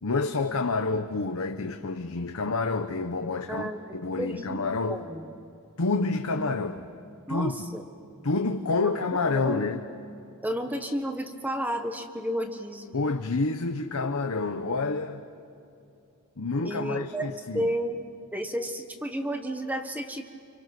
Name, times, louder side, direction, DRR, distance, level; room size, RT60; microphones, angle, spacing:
voice 1, 0.0-5.0 5.8-6.9 7.3-7.7 8.2-9.8 12.9-15.2 16.4-17.7, left 3 dB, 80° left, 5 dB, 1.0 m, -28 dB
voice 2, 3.5-5.3 7.3-7.8 9.3-9.6 10.4-12.9 16.6-18.0 18.3-20.2, equal, 5° right, 6 dB, 1.4 m, -32 dB
29.5 x 26.5 x 6.1 m, 2.6 s
head